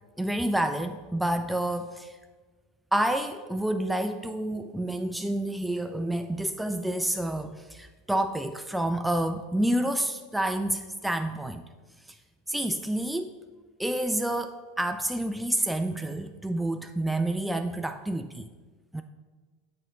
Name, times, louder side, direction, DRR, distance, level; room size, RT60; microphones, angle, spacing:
voice 1, 0.2-2.1 2.9-11.6 12.5-13.4 13.8-18.5 18.9-19.0, right 1 dB, 5° right, 8 dB, 0.3 m, -29 dB
7.3 x 3.8 x 5.5 m, 1.4 s
figure-of-eight pair, 80°, 0 cm